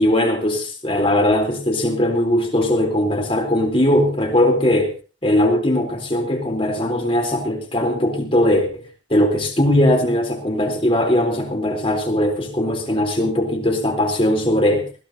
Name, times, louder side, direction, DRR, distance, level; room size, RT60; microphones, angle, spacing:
voice 1, 0.0-4.9 5.2-8.8 9.1-14.9, left 1 dB, 30° left, 3.8 m, -19 dB
20.5 x 16.0 x 2.9 m
head